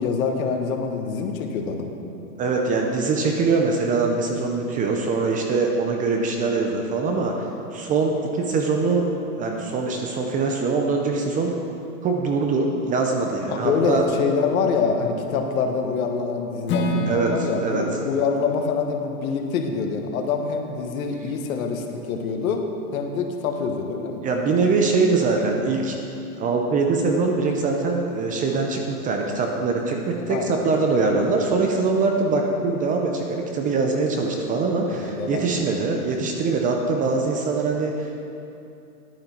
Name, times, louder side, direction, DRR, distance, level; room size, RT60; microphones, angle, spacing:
voice 1, 0.0-1.9 13.5-22.6 22.9-24.3 30.3-30.5 34.9-35.9, left 5 dB, 65° left, 4 dB, 1.4 m, -25 dB
voice 2, 2.4-9.1 9.4-11.6 12.0-14.0 17.1-17.8 24.2-26.0 26.4-38.3, right 4 dB, 20° right, 2 dB, 0.5 m, -23 dB
Acoustic guitar / Strum, 16.7-20.7, left 1 dB, 25° left, 0.7 m, -31 dB
10.5 x 9.3 x 4.4 m, 2.8 s
hypercardioid pair, 135°, 45 cm